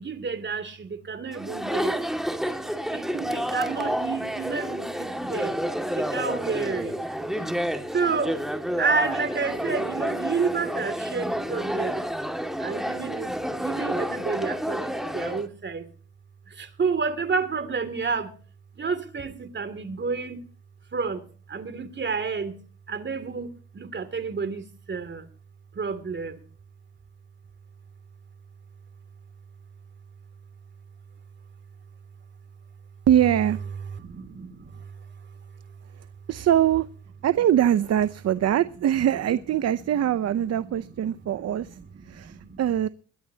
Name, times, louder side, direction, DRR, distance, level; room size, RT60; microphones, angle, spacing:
voice 1, 0.0-2.1 2.9-5.6 5.9-7.0 7.9-8.4 8.8-12.0 12.6-15.9 16.5-18.3 18.8-20.4 20.9-21.2 21.5-22.6 22.9-25.3 25.7-26.4 34.0-34.9 41.0-41.4 41.7-42.6, right 5 dB, 35° right, 2.7 m, -30 dB
Chatter, 1.3-15.5, equal, ahead, 2.2 m, -30 dB
voice 2, 33.1-33.6 36.3-36.9 37.2-41.8 42.0-42.9, right 11 dB, 55° right, 0.8 m, -23 dB
21.5 x 14.5 x 2.9 m
cardioid pair, 90°, 30 cm